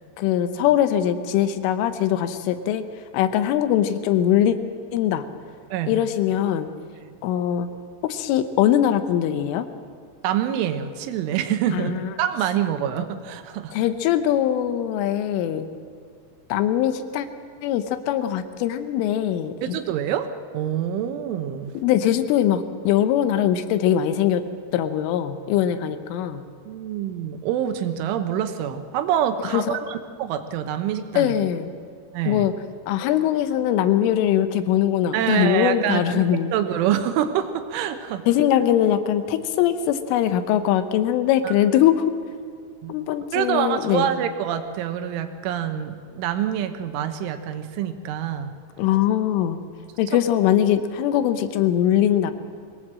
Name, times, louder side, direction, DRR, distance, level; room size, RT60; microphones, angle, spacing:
voice 1, 0.2-2.8 3.1-4.6 4.9-5.2 5.9-6.7 7.2-7.7 8.0-9.7 11.7-12.1 13.7-15.7 16.5-17.3 17.6-19.8 21.8-24.4 24.7-26.4 29.5-29.6 31.2-31.7 32.3-32.5 32.9-36.5 38.3-42.1 42.9-44.1 48.8-49.6 50.0-52.3, left 11 dB, 90° left, 10 dB, 3.6 m, -21 dB
voice 2, 5.7-6.0 10.2-13.8 19.6-20.3 20.5-21.7 26.7-31.4 32.1-32.5 35.1-36.3 36.5-38.3 41.4-41.5 42.8-42.9 43.3-48.5, right 10 dB, 80° right, 8 dB, 3.5 m, -26 dB
22.5 x 18.5 x 7.6 m, 2.1 s
omnidirectional pair, 5.6 m